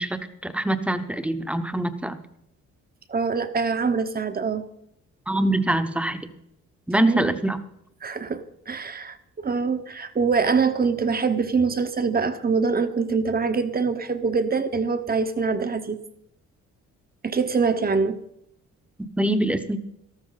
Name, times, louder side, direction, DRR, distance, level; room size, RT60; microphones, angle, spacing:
voice 1, 0.0-2.2 5.3-6.3 6.9-7.6 19.2-19.8, right 1 dB, 5° right, 9 dB, 1.0 m, -24 dB
voice 2, 3.1-4.6 7.1-7.4 8.0-16.0 17.2-18.2, right 5 dB, 30° right, 10 dB, 1.1 m, -24 dB
13.0 x 13.0 x 4.1 m, 0.78 s
cardioid pair, 90°, 30 cm